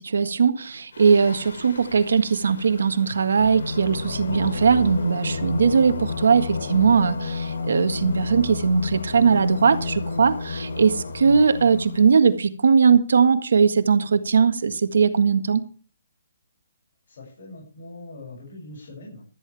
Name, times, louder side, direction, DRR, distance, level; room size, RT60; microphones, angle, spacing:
voice 1, 0.0-15.6, right 6 dB, 75° right, 10 dB, 1.7 m, -19 dB
Singing, 0.9-12.3, left 4 dB, 80° left, 2.9 m, -32 dB
voice 2, 17.1-19.3, left 2 dB, 45° left, -2 dB, 7.1 m, -42 dB
15.5 x 13.5 x 3.5 m, 0.37 s
hypercardioid pair, 180°, 0 cm